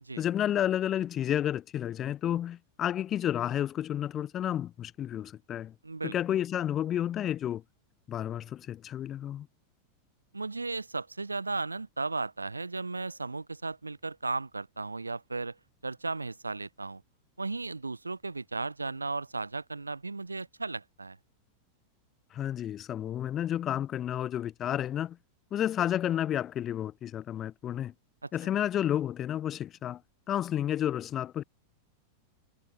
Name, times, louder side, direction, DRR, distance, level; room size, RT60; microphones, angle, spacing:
voice 1, 0.2-5.7 6.0-7.6 8.1-9.5 22.3-25.2 25.5-27.9 28.3-30.0 30.3-31.4, left 11 dB, 30° left, 1.3 m, -31 dB
voice 2, 5.8-6.1 10.3-15.6 15.8-17.0 17.4-21.2 28.2-28.3, right 3 dB, 80° right, 3.8 m, -35 dB
figure-of-eight pair, 90°, 0 cm